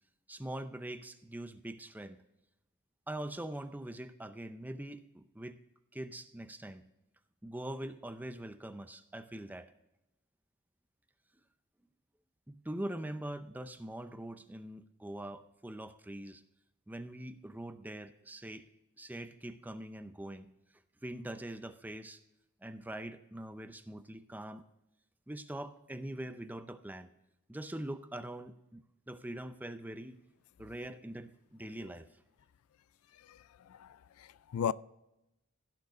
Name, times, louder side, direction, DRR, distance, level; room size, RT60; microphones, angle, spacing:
voice 1, 0.3-2.2 3.1-5.6 5.9-6.9 7.4-9.7 12.5-16.4 16.9-18.7 19.0-20.5 21.0-22.2 22.6-24.6 25.3-27.1 27.5-30.2 30.6-32.1, right 1 dB, 10° right, 0.5 m, -43 dB
voice 2, 33.7-34.7, left 8 dB, 75° left, 0.3 m, -36 dB
16.5 x 6.5 x 3.8 m
head